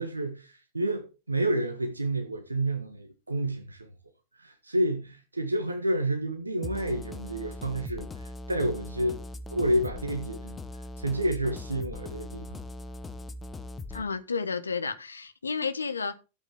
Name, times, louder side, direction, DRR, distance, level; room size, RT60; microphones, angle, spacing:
voice 1, 0.0-3.9 4.3-9.2 9.5-10.6 11.0-12.6, right 1 dB, 80° right, 1.5 m, -30 dB
sound 1, 6.6-14.0, left 2 dB, 15° left, 1.2 m, -40 dB
voice 2, 13.9-16.2, left 5 dB, 75° left, 1.2 m, -31 dB
13.0 x 8.3 x 3.7 m
figure-of-eight pair, 90°, 0 cm